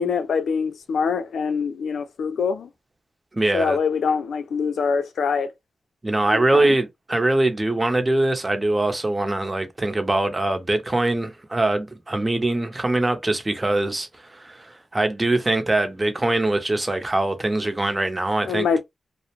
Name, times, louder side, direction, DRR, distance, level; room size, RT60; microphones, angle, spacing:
voice 1, 0.0-2.7 3.5-5.5 6.3-6.8 18.5-18.8, left 5 dB, 85° left, 0.4 m, -24 dB
voice 2, 3.3-3.8 6.0-18.7, right 2 dB, 20° right, 0.7 m, -23 dB
2.4 x 2.0 x 2.9 m
wide cardioid pair, 100°, 0 cm